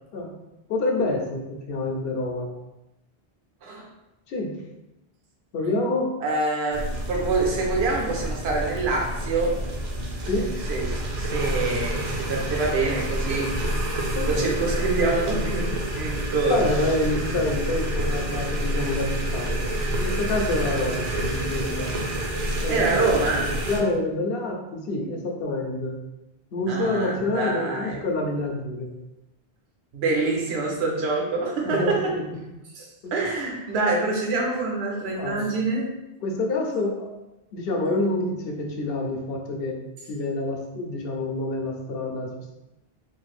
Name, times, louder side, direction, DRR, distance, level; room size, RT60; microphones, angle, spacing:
voice 1, 0.7-2.5 4.3-4.5 5.5-6.1 10.3-10.5 14.1-14.5 16.5-21.9 22.6-22.8 23.7-26.0 26.5-28.9 31.6-32.4 33.0-33.2 35.1-35.5 36.2-37.1 37.5-39.8 40.1-42.5, left 2 dB, 70° left, 1 dB, 0.8 m, -27 dB
voice 2, 6.2-9.6 10.7-13.5 14.3-16.8 22.7-23.6 26.7-28.0 29.9-32.1 32.7-35.9, right 3 dB, 90° right, 0 dB, 1.0 m, -26 dB
sound 1, 6.7-23.8, right 1 dB, 55° right, 0.6 m, -28 dB
2.5 x 2.4 x 3.1 m, 0.95 s
omnidirectional pair, 1.0 m